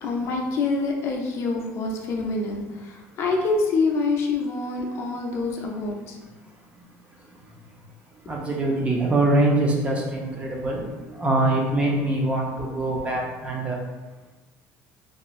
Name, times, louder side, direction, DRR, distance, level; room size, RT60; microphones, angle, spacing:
voice 1, 0.0-6.2, left 3 dB, 50° left, 1 dB, 0.4 m, -26 dB
voice 2, 8.3-10.9 11.2-13.8, right 2 dB, 20° right, -1 dB, 0.4 m, -23 dB
2.9 x 2.4 x 2.3 m, 1.2 s
cardioid pair, 155°, 6 cm